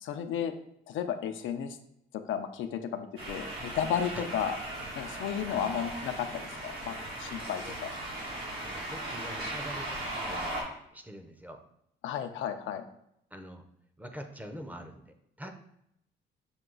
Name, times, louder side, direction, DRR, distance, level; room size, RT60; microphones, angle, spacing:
voice 1, 0.0-0.5 0.9-1.8 2.1-4.6 5.0-7.9 12.0-12.8, left 8 dB, 80° left, 7 dB, 0.5 m, -33 dB
sound 1, 3.2-10.6, right 1 dB, 90° right, 1.5 m, -38 dB
voice 2, 5.4-6.0 7.5-7.8 8.6-11.6 13.3-13.6 14.0-15.5, equal, 10° right, 5 dB, 0.5 m, -45 dB
6.0 x 2.3 x 3.8 m, 0.76 s
cardioid pair, 90°, 20 cm